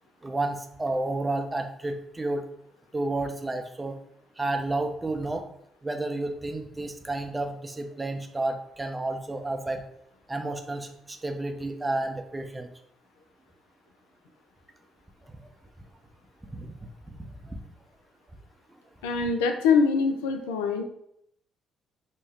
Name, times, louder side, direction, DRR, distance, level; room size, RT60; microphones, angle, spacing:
voice 1, 0.2-2.4 2.9-4.0 4.4-5.4 5.8-9.8 10.3-12.7 16.5-16.7 17.1-17.6, right 2 dB, 20° right, 5 dB, 0.5 m, -31 dB
voice 2, 19.0-20.8, left 5 dB, 85° left, 6 dB, 0.3 m, -23 dB
3.4 x 2.1 x 3.3 m, 0.73 s
hypercardioid pair, 50°, 0 cm